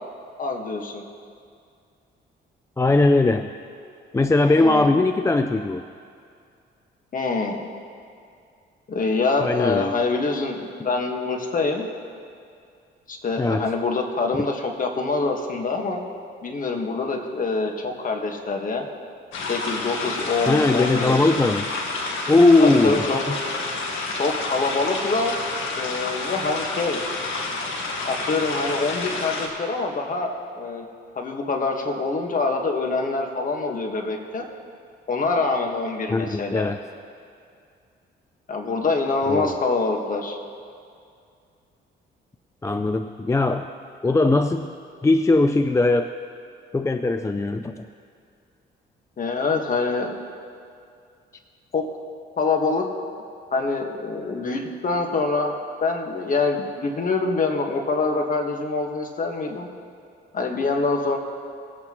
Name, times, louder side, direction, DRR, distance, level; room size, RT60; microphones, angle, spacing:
voice 1, 0.4-1.0 4.5-4.9 7.1-7.6 8.9-11.9 13.1-16.0 16.4-18.9 19.5-21.3 22.6-23.2 24.2-25.4 25.7-27.0 28.1-30.8 31.1-34.5 35.1-36.7 38.5-40.4 49.2-50.1 51.7-51.8 52.4-52.8 53.5-55.5 55.8-59.7 60.3-61.2, left 3 dB, 40° left, 3 dB, 1.5 m, -25 dB
voice 2, 2.8-3.5 4.1-5.8 9.4-10.0 13.4-13.7 20.5-21.7 22.3-23.4 36.1-36.8 39.3-39.6 42.6-43.7 44.0-44.7 45.0-46.1 46.7-47.9, left 2 dB, 15° left, 8 dB, 0.4 m, -19 dB
sound 1, 19.3-29.5, left 3 dB, 80° left, 1.6 m, -29 dB
20.0 x 8.5 x 3.0 m, 2.4 s
cardioid pair, 90°, 20 cm